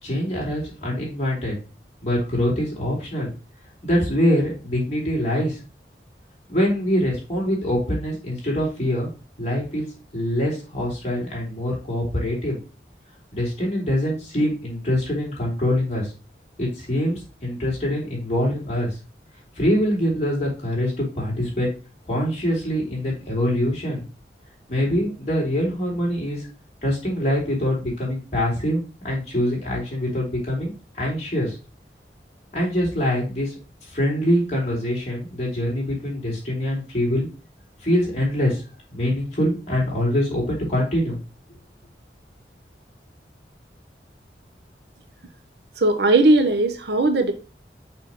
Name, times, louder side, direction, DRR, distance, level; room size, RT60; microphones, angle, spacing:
voice 1, 0.0-1.5 2.0-3.3 3.8-5.6 6.5-9.1 9.4-12.6 13.3-16.1 16.6-19.0 19.5-21.7 22.0-24.0 24.7-26.5 26.8-31.6 32.5-33.5 33.8-37.3 37.8-38.6 38.9-41.2, equal, 40° left, 3.4 m, -24 dB
voice 2, 45.8-47.3, right 2 dB, 70° right, 0.9 m, -18 dB
6.1 x 5.4 x 3.0 m
head